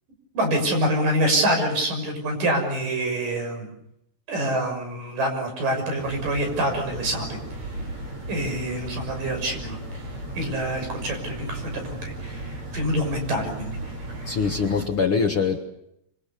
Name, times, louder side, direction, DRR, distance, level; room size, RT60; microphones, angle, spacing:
voice 1, 0.3-3.7 4.3-7.4 8.3-10.0 10.4-13.8, right 1 dB, 70° right, 4 dB, 8.0 m, -26 dB
sound 1, 6.0-14.9, right 1 dB, 50° right, 8.8 m, -35 dB
voice 2, 14.3-15.6, left 5 dB, 55° left, 4 dB, 1.7 m, -23 dB
26.0 x 25.5 x 6.8 m, 0.78 s
omnidirectional pair, 4.0 m